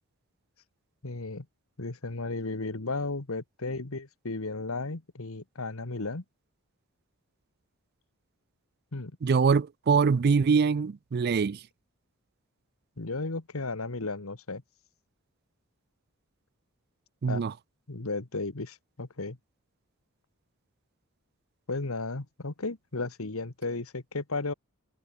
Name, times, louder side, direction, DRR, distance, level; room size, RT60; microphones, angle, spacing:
voice 1, 1.0-1.4 1.8-6.2 8.9-9.1 13.0-14.6 17.3-17.4 17.9-19.4 21.7-24.5, left 3 dB, 75° left, 1.5 m, -34 dB
voice 2, 9.2-11.6 17.2-17.5, right 5 dB, 45° right, 0.4 m, -24 dB
head